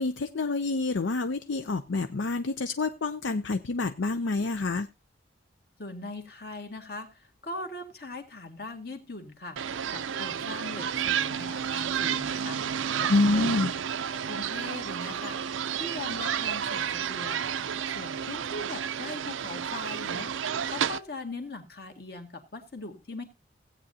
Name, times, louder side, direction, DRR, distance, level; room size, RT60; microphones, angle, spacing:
voice 1, 0.0-4.9 13.1-13.7, left 3 dB, 70° left, 10 dB, 0.6 m, -27 dB
voice 2, 5.8-13.6 14.1-20.3 20.7-23.2, left 2 dB, 50° left, 4 dB, 1.9 m, -41 dB
sound 1, 9.6-21.0, right 8 dB, 85° right, 0.5 m, -31 dB
16.5 x 8.8 x 2.8 m, 0.26 s
head